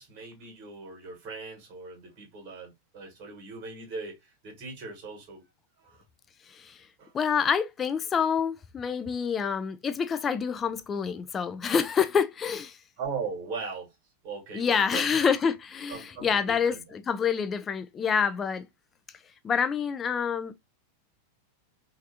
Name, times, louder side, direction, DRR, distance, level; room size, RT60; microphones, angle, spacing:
voice 1, 0.0-5.4 5.8-6.0 7.0-7.1 13.0-14.0 14.2-15.1 15.9-16.8, right 4 dB, 40° right, 1.2 m, -39 dB
voice 2, 6.5-6.9 7.1-12.8 14.5-18.7 19.4-20.5, left 6 dB, 20° left, 0.4 m, -27 dB
3.2 x 2.4 x 2.5 m
figure-of-eight pair, 90°, 0 cm